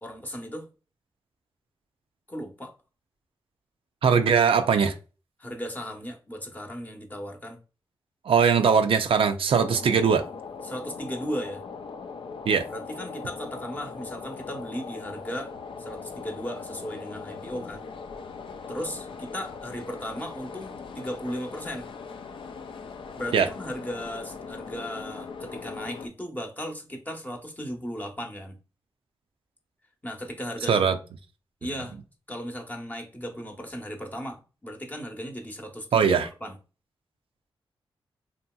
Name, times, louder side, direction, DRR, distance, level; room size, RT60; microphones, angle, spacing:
voice 1, 0.0-0.7 2.3-2.7 5.4-7.6 10.6-11.6 12.7-15.5 15.8-17.9 18.7-21.9 23.2-28.6 30.0-30.9 31.6-32.0 32.3-36.6, equal, 20° left, 0.8 m, -36 dB
voice 2, 4.0-4.9 8.3-10.2 12.5-12.6 23.3-23.5 30.7-31.0 35.9-36.3, right 6 dB, 75° right, 0.4 m, -20 dB
sound 1, 9.5-26.1, left 5 dB, 65° left, 0.4 m, -40 dB
2.9 x 2.7 x 2.2 m
cardioid pair, 65°, 9 cm